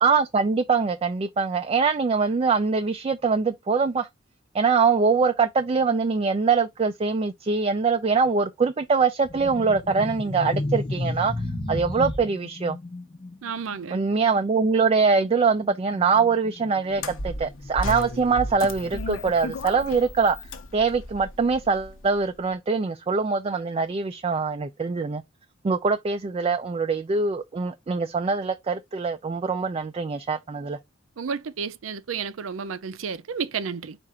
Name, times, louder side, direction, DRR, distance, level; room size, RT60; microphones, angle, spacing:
voice 1, 0.0-4.1 4.5-11.3 11.7-12.8 13.9-20.4 20.7-25.2 25.6-30.8, right 5 dB, 30° right, 0.4 m, -23 dB
sound 1, 9.2-19.2 19.5-19.8 20.5-21.5, left 2 dB, 25° left, 0.8 m, -35 dB
voice 2, 13.4-14.0 31.2-34.0, right 6 dB, 85° right, 0.5 m, -31 dB
sound 2, 16.9-22.2, left 1 dB, 75° left, 0.8 m, -34 dB
4.8 x 2.5 x 4.2 m
head